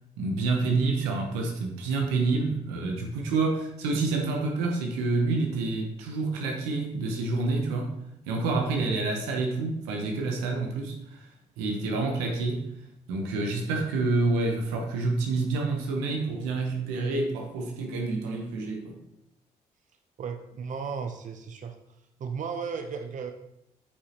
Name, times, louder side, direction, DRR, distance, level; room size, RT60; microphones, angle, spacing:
voice 1, 0.2-8.0 8.3-11.3 11.6-12.7 13.1-19.0, right 3 dB, 85° right, 2 dB, 1.1 m, -28 dB
voice 2, 20.2-21.8 22.2-23.3, right 6 dB, 50° right, 6 dB, 0.7 m, -34 dB
8.2 x 5.6 x 3.0 m, 0.81 s
hypercardioid pair, 50°, 16 cm